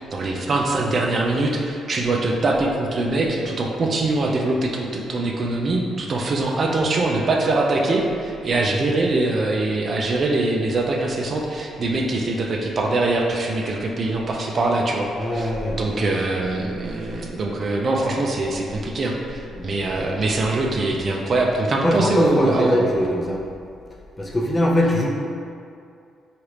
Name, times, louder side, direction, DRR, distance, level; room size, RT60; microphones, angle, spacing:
voice 1, 0.1-22.9, right 2 dB, 45° right, 0 dB, 0.4 m, -23 dB
voice 2, 15.2-16.1 19.5-20.1 21.8-23.4 24.2-25.1, left 1 dB, 20° left, -2 dB, 0.5 m, -22 dB
3.0 x 2.4 x 3.2 m, 2.4 s
cardioid pair, 90°, 0 cm